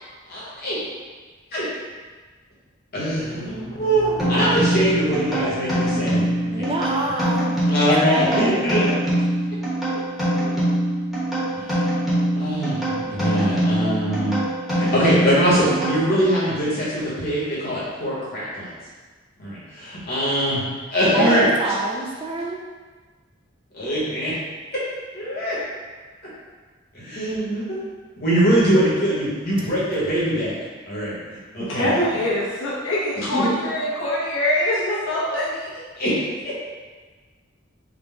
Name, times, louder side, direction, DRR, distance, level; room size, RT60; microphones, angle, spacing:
voice 1, 0.3-0.8 1.5-1.6 2.9-6.3 6.6-7.1 7.7-8.9 10.4-10.6 11.5-11.7 12.3-14.4 14.7-18.7 19.4-20.6 20.9-21.8 23.7-24.4 24.7-24.8 25.1-25.6 26.9-27.8 28.2-30.6 30.9-31.9 33.2-33.5 36.0-36.2 36.4-36.5, equal, 50° left, -8 dB, 1.3 m, -22 dB
sound 1, 3.1-7.7, left 2 dB, 50° right, 1.1 m, -39 dB
sound 2, 4.2-16.4, right 1 dB, ahead, 1.0 m, -24 dB
voice 2, 6.5-7.5 8.0-8.6 21.1-22.6, right 2 dB, 25° right, -1 dB, 0.3 m, -26 dB
voice 3, 31.6-35.8, left 1 dB, 80° left, -6 dB, 1.0 m, -24 dB
3.8 x 2.3 x 3.5 m, 1.4 s
head